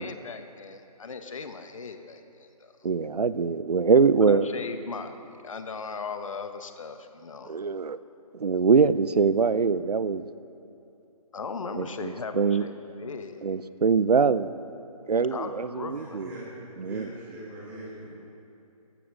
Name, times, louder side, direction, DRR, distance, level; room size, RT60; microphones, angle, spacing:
voice 1, 0.0-2.7 4.2-5.1 5.4-7.6 11.3-13.4 15.3-16.3, left 4 dB, 55° left, 8 dB, 1.1 m, -38 dB
voice 2, 2.8-4.5 7.5-8.0 8.3-10.3 11.7-12.6 13.4-14.5 15.1-16.3 16.8-17.1, right 5 dB, 80° right, 15 dB, 0.7 m, -23 dB
voice 3, 15.9-18.1, right 1 dB, 10° right, -8 dB, 4.1 m, -42 dB
14.5 x 14.0 x 6.4 m, 2.8 s
hypercardioid pair, 170°, 20 cm